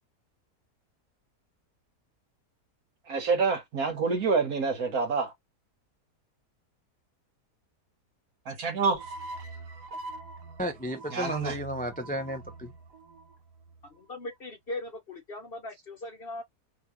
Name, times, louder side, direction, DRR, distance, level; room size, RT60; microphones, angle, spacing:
voice 1, 3.1-5.3 8.5-9.0 11.1-11.6, right 4 dB, 65° right, 1.7 m, -27 dB
sound 1, 8.9-14.2, right 2 dB, 85° right, 1.6 m, -44 dB
voice 2, 10.6-12.7, equal, 10° left, 0.4 m, -33 dB
voice 3, 13.9-16.4, left 2 dB, 45° left, 0.9 m, -39 dB
4.8 x 3.3 x 2.7 m
omnidirectional pair, 1.7 m